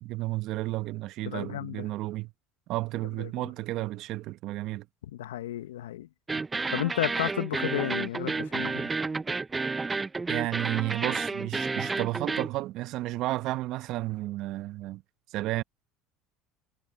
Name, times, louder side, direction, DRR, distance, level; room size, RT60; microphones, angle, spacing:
voice 1, 0.0-2.3 2.7-4.8 6.3-6.4 10.3-15.0 15.3-15.6, right 17 dB, 60° right, 1.0 m, -32 dB
voice 2, 1.3-1.9 3.2-3.3 5.1-6.1 6.7-9.0, left 13 dB, 85° left, 1.0 m, -33 dB
sound 1, 6.3-12.5, right 3 dB, 20° right, 0.6 m, -31 dB
hypercardioid pair, 80°, 0 cm